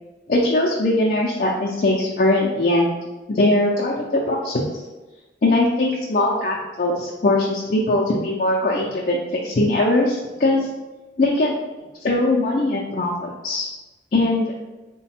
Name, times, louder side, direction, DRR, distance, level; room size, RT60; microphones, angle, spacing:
voice 1, 0.3-3.0 3.3-4.8 5.4-10.7 11.2-11.5 12.0-13.7 14.1-14.5, left 2 dB, 45° left, -3 dB, 0.4 m, -20 dB
3.9 x 2.2 x 4.2 m, 1.1 s
head